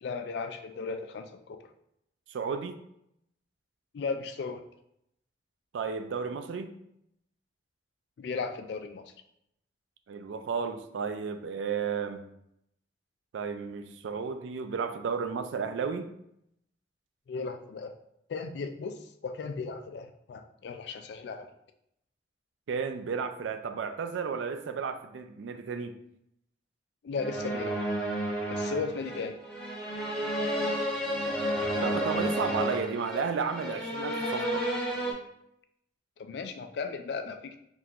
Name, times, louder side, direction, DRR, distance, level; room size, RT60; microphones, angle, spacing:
voice 1, 0.0-1.6 3.9-4.6 8.2-9.0 17.3-17.9 18.3-18.9 19.2-21.5 27.0-27.8 28.5-29.4 36.2-37.6, left 4 dB, 60° left, 7 dB, 0.3 m, -36 dB
voice 2, 2.3-2.8 5.7-6.7 10.1-12.2 13.3-16.1 22.7-25.9 31.8-34.6, right 5 dB, 75° right, 8 dB, 0.3 m, -33 dB
sound 1, 27.2-35.1, equal, 10° left, 1.1 m, -31 dB
3.7 x 2.8 x 2.4 m, 0.77 s
head